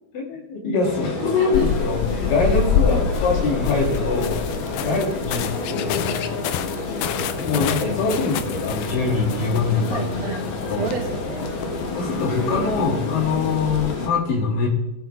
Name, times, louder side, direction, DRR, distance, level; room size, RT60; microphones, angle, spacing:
voice 1, 0.1-2.0 2.3-4.4 4.7-6.4 7.2-10.0 10.7-10.8 12.0-14.7, left 4 dB, 70° left, -3 dB, 4.1 m, -23 dB
sound 1, 0.8-14.1, left 3 dB, 50° left, 1.7 m, -29 dB
voice 2, 1.4-1.7 2.9-3.1 4.8-5.1 9.9-10.5 10.8-12.0, right 5 dB, 75° right, 1 dB, 3.3 m, -32 dB
sound 2, 1.5-14.0, left 7 dB, 85° left, 1.8 m, -28 dB
17.0 x 7.6 x 3.5 m, 0.92 s
omnidirectional pair, 4.2 m